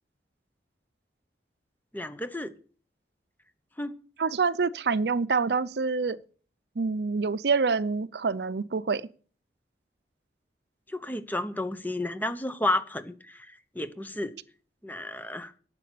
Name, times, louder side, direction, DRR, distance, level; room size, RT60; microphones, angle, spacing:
voice 1, 1.9-2.5 3.8-3.9 10.9-13.5 13.7-14.3 14.8-15.5, left 1 dB, 10° left, 0.8 m, -31 dB
voice 2, 4.2-6.2 6.8-9.1, right 4 dB, 70° right, 0.5 m, -26 dB
10.5 x 7.5 x 8.4 m
head